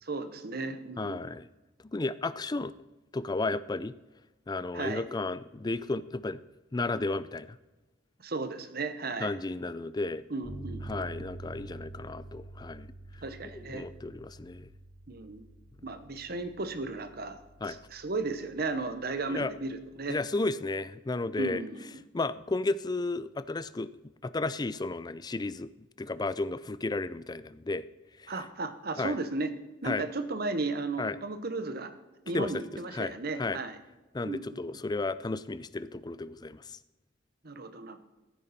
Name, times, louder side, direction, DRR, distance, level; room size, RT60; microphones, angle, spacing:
voice 1, 0.0-1.2 4.7-5.0 8.2-9.3 10.3-11.1 13.2-13.9 15.1-15.4 15.8-17.4 17.7-20.2 21.4-21.8 28.3-29.5 29.8-31.9 32.3-33.8 34.2-34.6 37.4-38.0, right 3 dB, 55° right, 10 dB, 1.1 m, -35 dB
voice 2, 1.0-1.5 1.9-2.7 3.1-3.9 4.5-6.4 6.7-7.6 9.2-10.2 10.9-12.9 13.5-14.7 17.6-17.8 19.3-19.5 20.1-21.6 22.1-23.9 24.2-25.7 26.0-27.9 28.2-28.3 29.0-29.1 29.8-30.1 31.0-31.2 32.3-33.6 34.1-36.8, left 3 dB, 20° left, 16 dB, 0.4 m, -33 dB
Bass guitar, 10.4-20.2, right 2 dB, 35° right, 4.5 m, -47 dB
15.0 x 9.3 x 4.3 m, 1.1 s
head